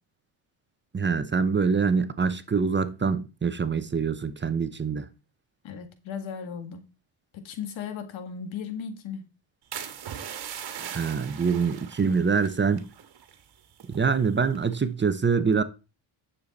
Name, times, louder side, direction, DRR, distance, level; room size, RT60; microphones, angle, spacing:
voice 1, 0.9-5.1 10.8-12.8 13.9-15.6, right 5 dB, 25° right, 1.0 m, -25 dB
voice 2, 5.6-6.9 7.3-9.3, left 7 dB, 70° left, 1.9 m, -36 dB
sound 1, 9.7-13.5 13.7-14.1 14.6-14.9, right 9 dB, 55° right, 1.9 m, -40 dB
10.0 x 7.0 x 4.2 m
cardioid pair, 90°, 47 cm